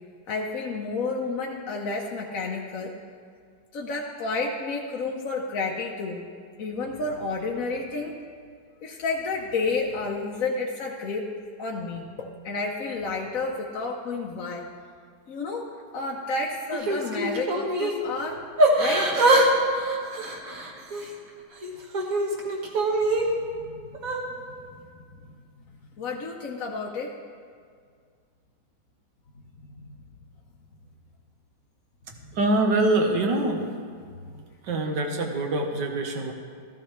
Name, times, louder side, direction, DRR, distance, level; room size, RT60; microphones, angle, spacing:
voice 1, 0.3-2.9 3.7-6.3 6.6-8.2 8.8-11.3 11.6-14.7 15.3-18.5 18.8-19.1 23.2-23.3 23.6-23.8 24.2-24.9 26.0-27.1 29.6-29.9 34.3-34.4, left 3 dB, 60° left, -1 dB, 1.1 m, -31 dB
Yell / Crying sobbing, 16.7-18.0 18.6-19.5 19.7-21.1 21.6-23.2 23.9-24.2, right 2 dB, 50° right, 1.6 m, -23 dB
voice 2, 32.3-33.6 34.6-36.3, right 2 dB, 75° right, 3 dB, 1.8 m, -24 dB
14.0 x 13.0 x 3.2 m, 2.1 s
omnidirectional pair, 2.0 m